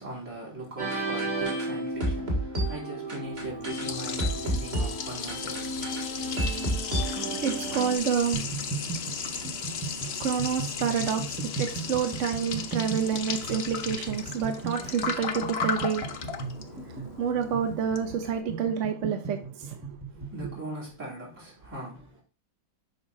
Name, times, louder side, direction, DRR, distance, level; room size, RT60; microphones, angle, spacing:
voice 1, 0.0-5.8 20.1-22.2, right 2 dB, 45° right, 3.5 m, -40 dB
sound 1, 0.8-8.0, right 1 dB, 25° right, 1.9 m, -31 dB
Liquid, 3.2-18.4, left 6 dB, 65° left, 0.6 m, -36 dB
voice 2, 6.9-19.8, right 7 dB, 60° right, 0.8 m, -29 dB
sound 2, 8.3-20.6, right 5 dB, 5° right, 0.7 m, -37 dB
7.8 x 2.9 x 5.5 m
omnidirectional pair, 1.9 m